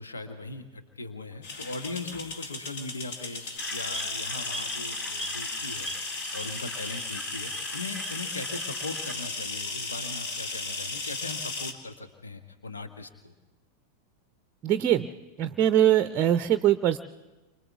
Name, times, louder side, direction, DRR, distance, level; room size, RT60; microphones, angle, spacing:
voice 1, 0.0-3.4 3.7-5.9 6.3-13.3, left 3 dB, 75° left, 7 dB, 1.2 m, -39 dB
sound 1, 1.4-11.7, left 3 dB, 50° left, 1.9 m, -35 dB
sound 2, 3.6-9.2, right 1 dB, ahead, 2.8 m, -41 dB
voice 2, 14.6-15.1 15.4-17.0, right 11 dB, 30° right, 12 dB, 0.6 m, -22 dB
30.0 x 24.5 x 3.5 m, 1.1 s
figure-of-eight pair, 90°, 0 cm